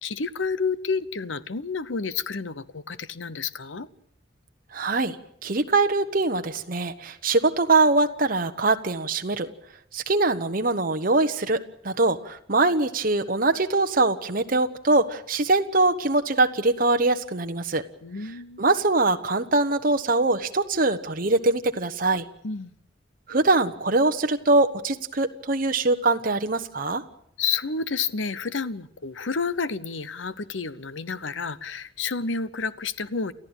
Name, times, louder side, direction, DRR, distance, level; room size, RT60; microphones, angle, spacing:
voice 1, 0.0-3.9 18.0-18.6 22.4-22.7 27.4-33.3, left 5 dB, 90° left, 17 dB, 1.0 m, -30 dB
voice 2, 4.7-5.2 5.4-9.5 9.9-17.8 18.6-22.2 23.3-27.0, right 2 dB, 50° right, 6 dB, 1.2 m, -23 dB
29.5 x 14.0 x 9.0 m, 0.70 s
head